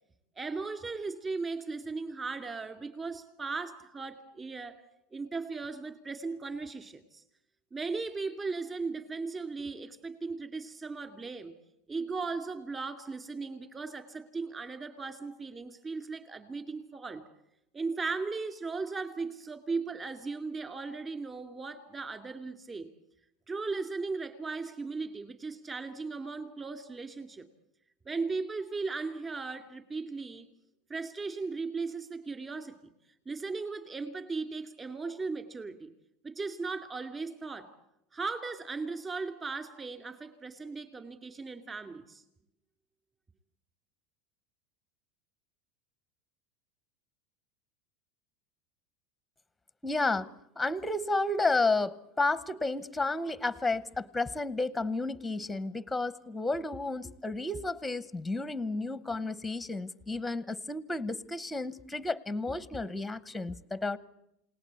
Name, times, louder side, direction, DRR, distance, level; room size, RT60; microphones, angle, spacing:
voice 1, 0.4-4.8 5.1-7.2 7.7-11.6 11.9-17.2 17.7-22.9 23.5-27.5 28.1-30.5 30.9-32.8 33.3-35.9 36.2-37.7 38.1-42.2, right 4 dB, 20° right, 10 dB, 2.5 m, -37 dB
voice 2, 49.8-64.0, left 2 dB, 5° left, 17 dB, 0.9 m, -32 dB
29.0 x 18.5 x 8.3 m, 0.83 s
supercardioid pair, 150°, 0 cm